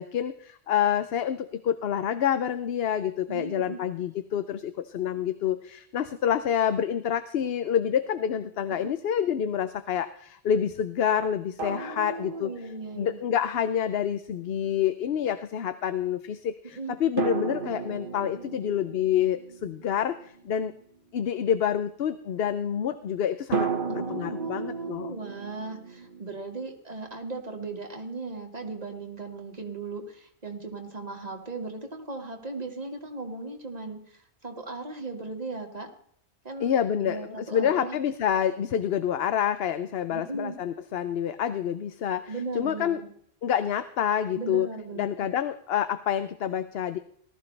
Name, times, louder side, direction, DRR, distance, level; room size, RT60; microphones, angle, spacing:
voice 1, 0.0-12.5 13.0-20.7 21.1-25.1 36.6-43.0 43.4-44.7 44.9-47.0, left 9 dB, 65° left, 12 dB, 0.9 m, -28 dB
voice 2, 3.3-3.8 8.7-8.9 11.7-13.2 16.6-17.1 23.9-35.9 36.4-36.7 37.0-38.0 40.1-40.6 42.3-43.1 44.3-45.3, right 3 dB, 40° right, 3 dB, 2.0 m, -37 dB
sound 1, 8.0-8.1 11.6-13.1 17.2-20.8 23.5-26.3, right 5 dB, 55° right, 1.4 m, -34 dB
19.0 x 13.5 x 3.3 m, 0.65 s
omnidirectional pair, 1.1 m